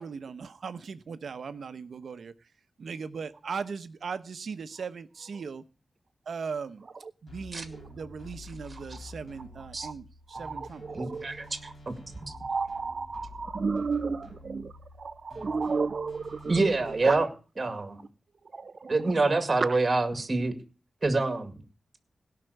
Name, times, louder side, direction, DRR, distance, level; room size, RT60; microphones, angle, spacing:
voice 1, 0.0-2.3 2.8-5.6 6.3-6.9 7.2-10.8, right 5 dB, 70° right, 1.0 m, -38 dB
sound 1, 7.3-17.2, left 2 dB, 50° left, 4.4 m, -48 dB
voice 2, 10.3-11.7 12.3-14.7 15.0-16.5 16.8-17.2 18.5-19.4 19.7-19.8, right 4 dB, 50° right, 0.6 m, -33 dB
voice 3, 10.9-11.5 11.9-12.0 15.4-15.5 16.5-17.3 17.6-18.0 18.9-20.5 21.0-21.6, right 3 dB, 30° right, 2.2 m, -26 dB
17.0 x 6.0 x 8.0 m
wide cardioid pair, 130°, 0 cm